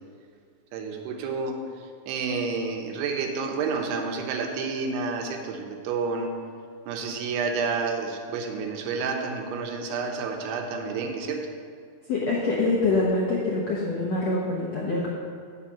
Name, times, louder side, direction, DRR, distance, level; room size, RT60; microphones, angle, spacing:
voice 1, 0.7-1.6 2.1-6.3 6.9-11.5, right 4 dB, 85° right, 3 dB, 3.0 m, -29 dB
voice 2, 12.1-15.1, left 3 dB, 75° left, -5 dB, 1.5 m, -25 dB
8.5 x 6.7 x 5.6 m, 2.2 s
omnidirectional pair, 4.6 m